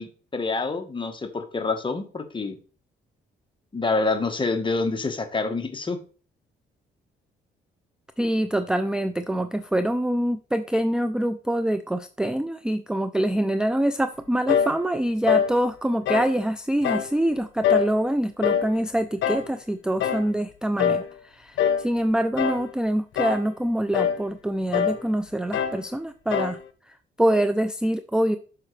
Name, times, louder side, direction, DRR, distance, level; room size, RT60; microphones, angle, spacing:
voice 1, 0.0-2.6 3.7-6.0, left 3 dB, 25° left, 6 dB, 1.2 m, -27 dB
voice 2, 8.2-26.6 26.9-28.4, right 1 dB, 5° right, 10 dB, 0.4 m, -25 dB
sound 1, 14.5-14.8 15.3-15.5 16.1-16.4 16.8-17.1 17.6-17.9 18.4-18.7 19.2-19.5 20.0-20.3 20.8-21.1 21.6-21.9 22.4-22.7 23.2-23.5 23.9-24.2 24.7-25.0 25.5-25.8 26.3-26.6, left 8 dB, 75° left, 0.8 m, -24 dB
7.2 x 5.9 x 3.2 m, 0.38 s
cardioid pair, 90°, 20 cm